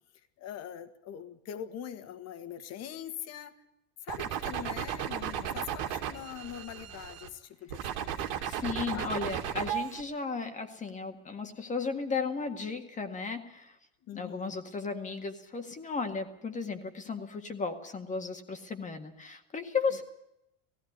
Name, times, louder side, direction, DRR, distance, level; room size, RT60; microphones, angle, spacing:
voice 1, 0.4-3.5 4.0-8.3 8.9-9.1 14.1-14.5, left 9 dB, 45° left, 9 dB, 1.8 m, -42 dB
sound 1, 4.1-7.3 7.7-10.0, right 9 dB, 75° right, 2.5 m, -35 dB
voice 2, 8.4-13.8 14.1-20.0, left 4 dB, 20° left, 6 dB, 1.8 m, -35 dB
17.5 x 16.0 x 9.5 m, 0.85 s
supercardioid pair, 130°, 35 cm